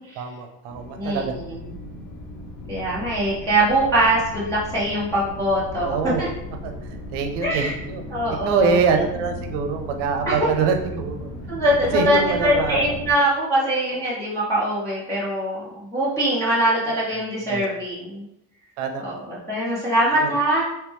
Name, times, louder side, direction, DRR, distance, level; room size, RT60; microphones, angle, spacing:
voice 1, 0.2-1.3 5.8-6.2 6.6-8.0 8.4-11.3 11.7-12.8 16.9-17.0 17.4-17.6 18.8-19.2 20.2-20.3, right 5 dB, 70° right, 5 dB, 0.6 m, -25 dB
sound 1, 0.7-13.1, equal, 85° left, 1.0 m, -36 dB
voice 2, 1.0-1.6 2.7-6.3 7.4-7.7 8.1-8.8 10.3-10.4 11.5-18.2 19.0-20.7, right 1 dB, 10° left, -10 dB, 0.4 m, -22 dB
3.1 x 3.0 x 3.4 m, 0.87 s
cardioid pair, 175°, 44 cm